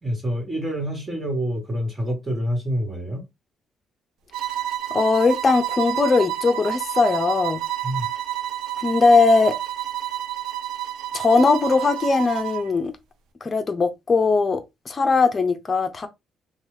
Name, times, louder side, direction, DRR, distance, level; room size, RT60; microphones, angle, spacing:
voice 1, 0.0-3.2 7.8-8.1, equal, 20° right, 1.7 m, -27 dB
sound 1, 4.3-12.7, right 12 dB, 85° right, 0.5 m, -29 dB
voice 2, 4.9-7.6 8.8-9.5 11.1-12.9 13.4-16.1, left 4 dB, 35° left, 0.7 m, -19 dB
2.9 x 2.4 x 3.2 m
cardioid pair, 90°, 0 cm